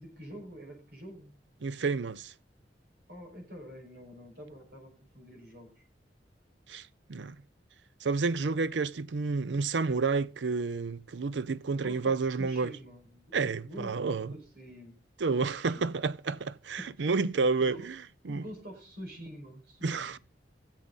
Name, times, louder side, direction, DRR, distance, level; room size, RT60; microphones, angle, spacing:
voice 1, 0.0-1.3 3.1-5.8 11.8-13.3 13.6-15.0 15.4-15.9 16.8-17.1 17.6-18.0 18.3-20.2, equal, 65° right, 5.3 m, -46 dB
voice 2, 1.6-2.3 6.7-6.8 7.1-7.4 8.0-12.7 13.3-14.3 15.2-17.9 18.3-18.4 19.8-20.2, right 4 dB, 80° right, 0.6 m, -30 dB
20.5 x 7.6 x 4.0 m
head